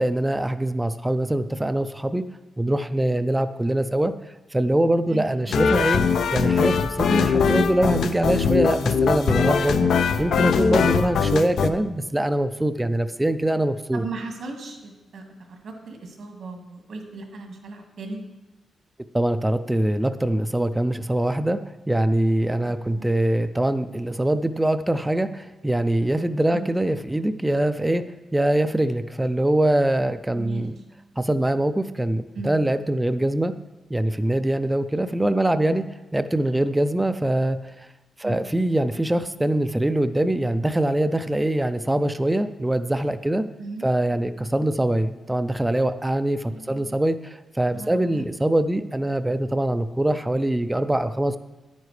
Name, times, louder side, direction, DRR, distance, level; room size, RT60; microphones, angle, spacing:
voice 1, 0.0-2.2 2.6-4.1 4.5-6.0 6.3-9.9 10.2-14.0 19.1-21.6 21.9-28.0 28.3-30.8 31.2-33.5 33.9-35.8 36.1-37.6 38.2-43.4 43.8-51.4, right 1 dB, 10° right, 11 dB, 0.4 m, -23 dB
voice 2, 5.1-5.5 10.3-10.5 13.9-18.2 22.6-22.7 23.0-23.1 26.5-26.7 30.3-30.7 32.3-32.5 38.2-38.4 43.6-43.9 46.5-46.9 47.7-48.3, right 3 dB, 75° right, 3 dB, 1.7 m, -37 dB
sound 1, 5.5-11.7, left 6 dB, 75° left, 0.5 m, -21 dB
10.0 x 9.3 x 3.2 m, 1.1 s
cardioid pair, 85°, 0 cm